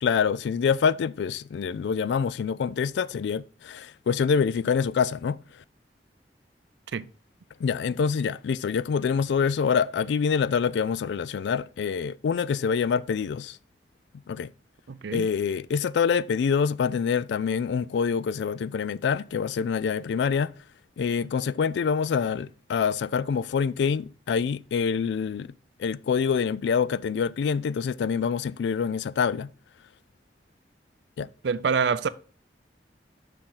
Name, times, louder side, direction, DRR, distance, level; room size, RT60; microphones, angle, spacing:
voice 1, 0.0-5.4 7.6-13.6 14.3-14.5 15.1-20.5 21.0-25.5 25.8-29.5 31.2-31.3, left 6 dB, 75° left, 0.3 m, -26 dB
voice 2, 14.9-15.3 31.4-32.1, right 5 dB, 75° right, 0.4 m, -26 dB
6.4 x 5.8 x 3.8 m
head